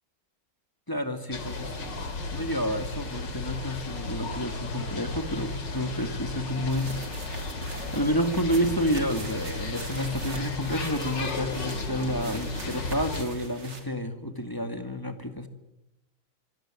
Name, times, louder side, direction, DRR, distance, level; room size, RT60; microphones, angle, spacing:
voice 1, 0.9-7.0 7.9-15.5, equal, 10° left, 7 dB, 2.1 m, -30 dB
sound 1, 1.3-13.2, left 3 dB, 65° left, 3.2 m, -34 dB
sound 2, 6.7-13.8, right 2 dB, 60° right, 4.1 m, -41 dB
25.0 x 18.0 x 9.1 m, 0.90 s
omnidirectional pair, 2.1 m